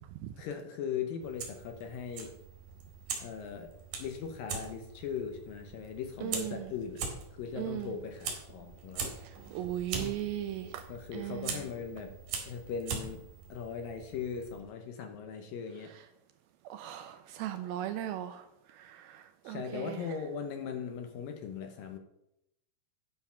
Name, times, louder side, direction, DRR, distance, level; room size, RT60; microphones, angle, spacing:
voice 1, 0.3-2.3 3.2-3.7 4.0-7.0 7.3-9.1 10.9-12.1 12.4-13.2 13.5-15.9 19.4-22.0, left 6 dB, 70° left, 5 dB, 2.3 m, -39 dB
Fire, 1.2-14.6, right 5 dB, 60° right, 3.3 m, -42 dB
voice 2, 6.2-6.6 7.6-7.9 9.5-10.9 11.1-11.6 16.7-18.4 18.8-20.0, right 12 dB, 80° right, 8 dB, 2.2 m, -37 dB
9.4 x 6.9 x 5.7 m, 0.81 s
omnidirectional pair, 4.7 m